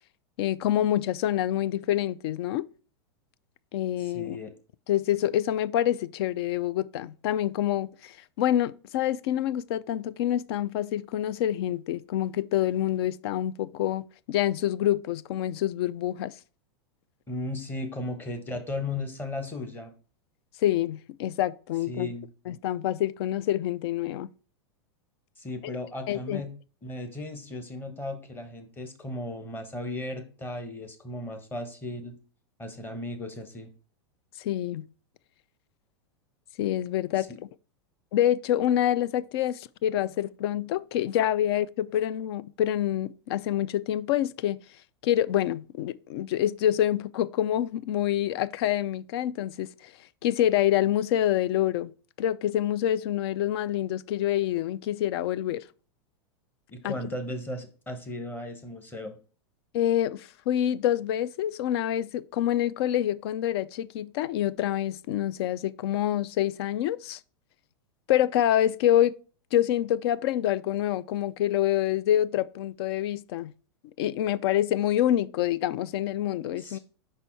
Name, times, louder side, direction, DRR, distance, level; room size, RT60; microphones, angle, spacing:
voice 1, 0.4-2.7 3.7-4.4 4.9-16.3 20.6-22.1 22.5-24.3 26.1-26.4 34.4-34.9 36.6-37.3 38.1-44.6 45.0-49.9 50.2-51.9 52.2-55.6 56.8-57.0 59.7-67.2 68.1-69.1 69.5-73.5 74.0-76.8, left 12 dB, 65° left, 0.4 m, -26 dB
voice 2, 4.0-4.5 17.3-19.9 21.9-22.3 25.4-26.5 26.8-32.2 32.6-33.7 37.2-37.4 56.7-59.2 76.6-76.8, left 1 dB, 15° left, 1.0 m, -36 dB
5.6 x 4.1 x 4.5 m
hypercardioid pair, 130°, 15 cm